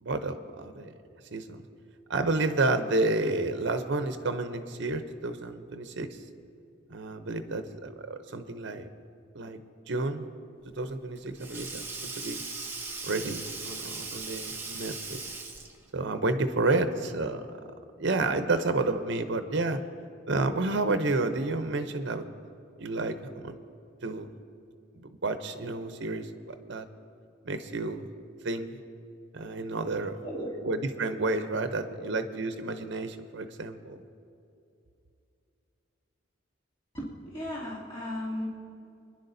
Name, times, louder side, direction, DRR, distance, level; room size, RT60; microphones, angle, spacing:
voice 1, 0.0-0.9 1.3-1.6 2.1-6.1 6.9-8.9 9.3-9.6 9.9-10.3 10.8-12.4 13.0-15.2 15.9-17.6 18.0-19.8 20.3-22.3 22.8-23.6 24.0-24.3 24.9-26.9 27.5-28.1 28.4-28.7 29.3-30.2 30.6-34.0, right 2 dB, 65° right, 9 dB, 0.7 m, -30 dB
Sink (filling or washing), 10.7-15.9, right 3 dB, 10° right, 0.9 m, -39 dB
voice 2, 29.9-30.6 31.7-32.2 36.9-38.5, equal, 25° left, -8 dB, 2.5 m, -37 dB
25.0 x 10.5 x 2.7 m, 2.6 s
head